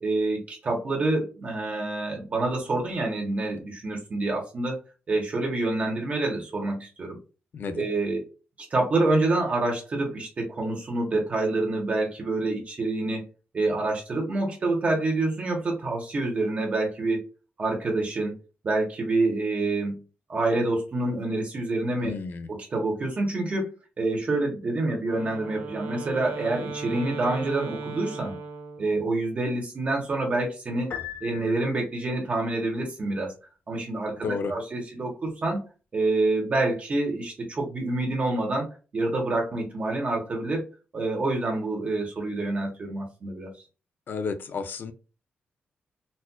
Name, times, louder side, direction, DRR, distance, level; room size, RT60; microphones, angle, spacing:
voice 1, 0.0-4.8 5.1-7.2 7.7-8.2 8.7-13.3 13.5-17.3 17.6-18.3 18.6-20.0 20.3-22.1 22.5-23.7 24.0-28.4 28.8-30.9 31.2-33.3 33.7-35.6 35.9-40.7 40.9-43.5, right 2 dB, 35° right, 1.0 m, -27 dB
voice 2, 7.5-7.9 22.0-22.5 34.2-34.5 44.1-44.9, left 5 dB, 55° left, 0.5 m, -31 dB
Wind instrument woodwind instrument, 25.0-29.1, right 4 dB, 85° right, 1.0 m, -37 dB
Piano, 30.9-32.2, left 9 dB, 75° left, 0.9 m, -38 dB
4.1 x 2.5 x 2.2 m
wide cardioid pair, 150°, 4 cm